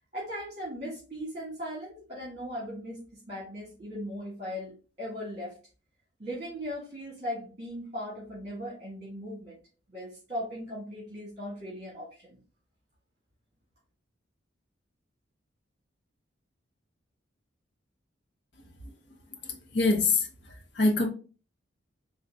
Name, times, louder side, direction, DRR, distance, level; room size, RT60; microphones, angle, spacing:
voice 1, 0.1-4.7 5.0-5.6 6.2-9.6 9.9-12.4, equal, 35° right, 1.3 m, -38 dB
voice 2, 19.7-20.3 20.8-21.1, left 3 dB, 60° left, 0.7 m, -23 dB
3.8 x 2.2 x 3.3 m
head